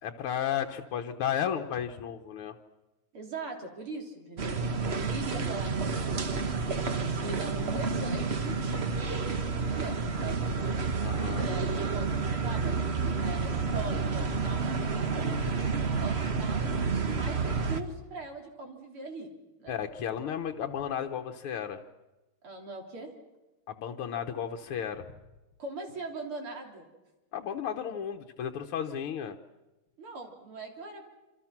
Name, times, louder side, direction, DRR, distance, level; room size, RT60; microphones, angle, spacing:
voice 1, 0.0-2.6 11.0-11.5 19.7-21.8 23.7-25.1 27.3-29.4, left 9 dB, 80° left, 4 dB, 1.9 m, -33 dB
voice 2, 3.1-4.6 4.9-6.4 6.9-10.4 11.4-15.4 16.0-19.3 19.6-19.8 22.4-23.1 25.6-26.9 30.0-31.0, right 3 dB, 75° right, 2 dB, 4.3 m, -41 dB
sound 1, 4.4-17.8, right 4 dB, 35° right, 1.3 m, -30 dB
27.0 x 26.5 x 6.0 m, 1.1 s
omnidirectional pair, 2.4 m